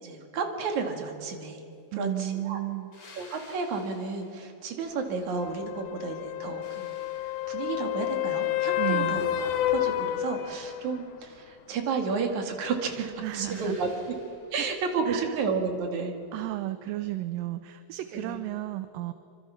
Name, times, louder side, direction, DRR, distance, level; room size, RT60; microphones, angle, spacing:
voice 1, 0.0-1.6 2.0-2.6 3.1-6.9 7.5-9.3 9.7-13.1 13.3-14.1 14.5-16.2 18.1-18.4, right 4 dB, 55° right, 4 dB, 3.3 m, -32 dB
voice 2, 1.9-2.9 8.8-9.2 13.0-13.8 14.6-14.7 15.1-15.4 16.3-19.1, right 16 dB, 80° right, 11 dB, 2.3 m, -33 dB
sound 1, 2.9-5.8 6.2-8.0 13.4-14.8 17.4-17.5, left 3 dB, 55° left, 5.6 m, -55 dB
sound 2, 5.4-11.0 15.1-15.2, left 13 dB, 70° left, 2.0 m, -30 dB
25.5 x 25.0 x 5.8 m, 2.6 s
omnidirectional pair, 4.2 m